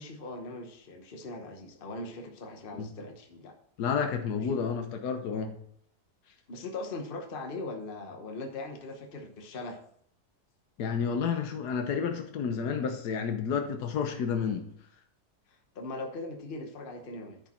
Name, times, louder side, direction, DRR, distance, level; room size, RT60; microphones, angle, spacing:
voice 1, 0.0-3.5 4.4-4.6 6.5-9.8 14.5-14.6 15.5-17.4, left 2 dB, 40° left, 4 dB, 1.2 m, -40 dB
voice 2, 3.8-5.6 10.8-14.6, left 6 dB, 80° left, 5 dB, 1.5 m, -30 dB
10.0 x 5.2 x 4.3 m, 0.67 s
omnidirectional pair, 1.7 m